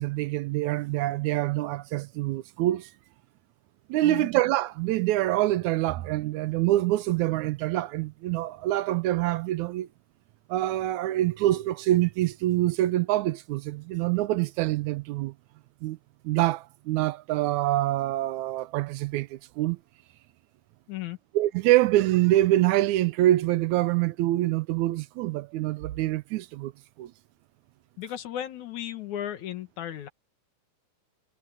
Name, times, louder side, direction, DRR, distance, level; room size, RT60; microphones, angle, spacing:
voice 1, 0.0-2.9 3.9-9.9 10.5-15.3 15.8-16.0 16.2-19.8 21.3-26.7 27.0-27.1, right 15 dB, 80° right, 2.0 m, -25 dB
voice 2, 28.0-30.1, left 11 dB, 80° left, 2.9 m, -35 dB
omnidirectional pair, 3.4 m